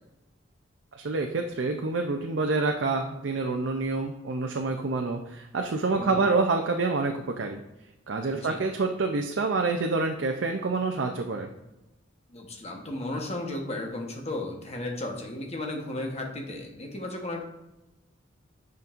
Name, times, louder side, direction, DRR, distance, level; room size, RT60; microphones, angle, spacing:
voice 1, 0.9-7.6 8.1-11.5, right 3 dB, 65° right, 4 dB, 0.5 m, -27 dB
voice 2, 12.3-17.4, left 1 dB, 35° left, 2 dB, 1.1 m, -34 dB
8.2 x 5.2 x 2.5 m, 0.98 s
head